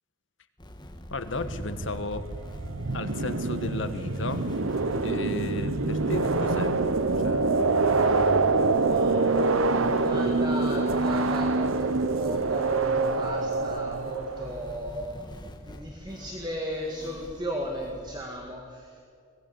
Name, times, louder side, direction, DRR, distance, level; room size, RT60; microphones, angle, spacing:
sound 1, 0.6-18.3, equal, 20° left, 1.5 m, -45 dB
voice 1, 1.1-2.3 2.9-4.5 5.0-6.7 7.2-7.5, left 2 dB, 70° left, 9 dB, 1.4 m, -34 dB
sound 2, 1.3-14.7, right 3 dB, 85° right, 1.0 m, -26 dB
voice 2, 8.8-9.3 9.6-15.3 15.6-19.0, equal, 20° right, 0 dB, 1.9 m, -36 dB
23.5 x 18.5 x 7.0 m, 2.4 s
head